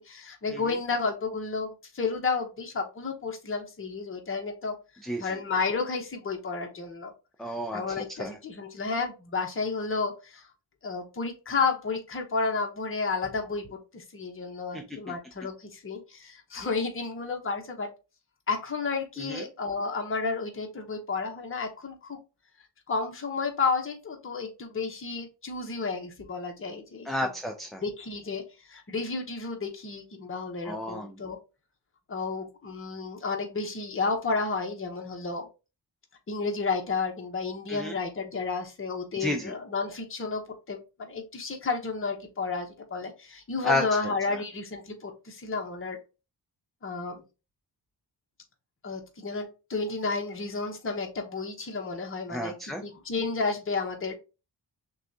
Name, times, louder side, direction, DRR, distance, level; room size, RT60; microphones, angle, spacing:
voice 1, 0.0-4.8 5.2-7.1 7.7-10.5 10.8-17.9 18.5-22.2 22.9-27.3 27.8-31.4 32.1-35.5 36.3-46.0 46.8-47.2 48.8-54.1, left 4 dB, 30° left, 3 dB, 0.9 m, -32 dB
voice 2, 7.4-7.8 8.2-8.3 14.7-14.8 19.3-19.4 27.1-27.8 30.6-31.1 37.7-37.9 39.2-39.5 43.6-43.8 52.3-52.8, left 1 dB, ahead, 3 dB, 0.4 m, -31 dB
6.1 x 2.3 x 2.7 m, 0.30 s
wide cardioid pair, 130°, 43 cm